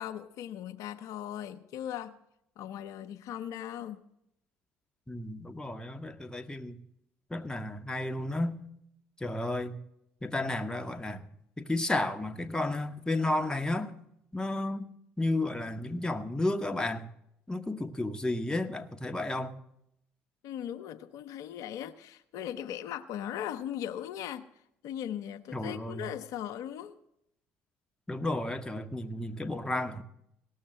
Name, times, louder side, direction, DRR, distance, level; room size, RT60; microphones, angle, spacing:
voice 1, 0.0-2.1 2.6-4.1 20.4-24.5 24.8-27.0, left 10 dB, 70° left, 0.7 m, -38 dB
voice 2, 5.1-6.8 7.3-8.6 9.2-9.8 10.2-11.3 11.6-13.9 14.3-14.9 15.2-17.1 17.5-19.6 25.5-26.1 28.1-30.0, left 2 dB, 10° left, 1.1 m, -32 dB
17.5 x 6.6 x 7.6 m
hypercardioid pair, 60°, 6 cm